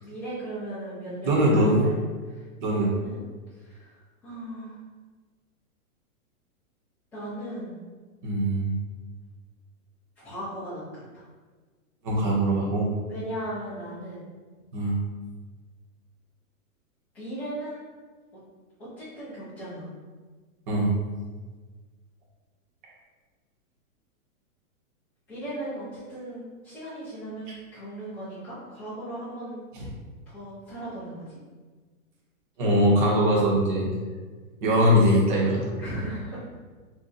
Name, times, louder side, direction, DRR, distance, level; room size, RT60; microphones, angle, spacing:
voice 1, 0.0-2.0 2.3-3.2 3.5-4.0 4.2-4.8 7.1-7.7 10.2-10.8 11.1-11.2 13.1-14.3 17.1-17.8 19.0-19.9 25.3-29.6 30.3-31.4 35.8-36.4, right 1 dB, 5° left, -16 dB, 0.4 m, -37 dB
voice 2, 1.2-1.8 2.6-2.9 8.2-8.7 12.0-12.9 14.7-14.9 20.7-20.9 29.7-29.8 32.6-33.9 34.6-35.7, equal, 35° right, -4 dB, 0.8 m, -22 dB
2.5 x 2.2 x 3.8 m, 1.4 s
hypercardioid pair, 155°, 43 cm